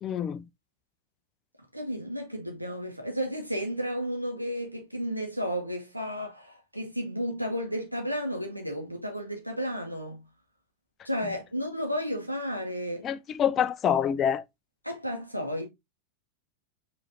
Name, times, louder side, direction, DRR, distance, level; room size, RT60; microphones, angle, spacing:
voice 1, 0.0-0.5 13.0-14.4, left 9 dB, 30° left, 0.4 m, -26 dB
voice 2, 1.7-10.2 11.0-13.1 14.8-15.7, equal, 90° right, 1.3 m, -32 dB
5.5 x 3.1 x 2.7 m
figure-of-eight pair, 90°, 0 cm